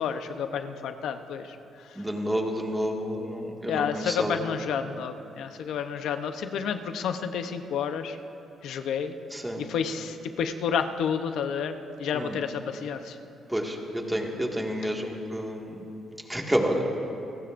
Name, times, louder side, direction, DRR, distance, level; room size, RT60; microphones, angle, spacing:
voice 1, 0.0-1.6 3.7-8.2 8.6-9.2 9.7-13.1, left 7 dB, 75° left, 8 dB, 0.8 m, -30 dB
voice 2, 2.0-4.6 9.3-9.7 12.1-12.4 13.5-15.8 16.3-16.8, equal, 10° right, 0 dB, 1.9 m, -29 dB
28.5 x 15.0 x 2.6 m, 2.8 s
cardioid pair, 90°, 0 cm